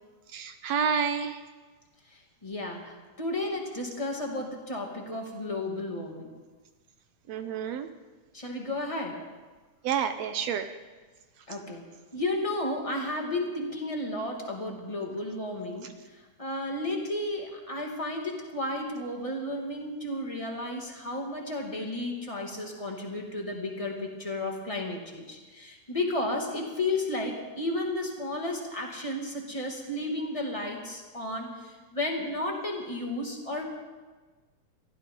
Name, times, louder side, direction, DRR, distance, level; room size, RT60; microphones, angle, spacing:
voice 1, 0.3-1.4 7.3-7.9 9.8-10.7, right 7 dB, 70° right, 8 dB, 1.7 m, -29 dB
voice 2, 2.4-6.3 8.3-9.2 11.5-11.9 12.1-15.9 16.4-33.7, left 2 dB, 10° left, -1 dB, 2.1 m, -33 dB
23.5 x 15.0 x 3.8 m, 1.3 s
omnidirectional pair, 3.5 m